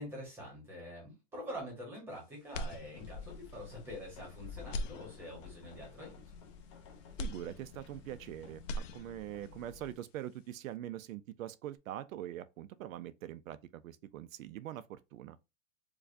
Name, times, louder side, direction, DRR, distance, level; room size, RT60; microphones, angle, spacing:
voice 1, 0.0-6.2, equal, 5° right, 1.0 m, -45 dB
sound 1, 2.5-3.4 3.9-4.0 4.6-5.7 7.2-8.3 8.5-9.5, left 1 dB, 70° left, 0.6 m, -41 dB
sound 2, 2.9-9.9, left 5 dB, 25° left, 0.6 m, -51 dB
voice 2, 7.2-15.4, right 12 dB, 90° right, 0.5 m, -43 dB
4.8 x 2.3 x 2.5 m
supercardioid pair, 175°, 39 cm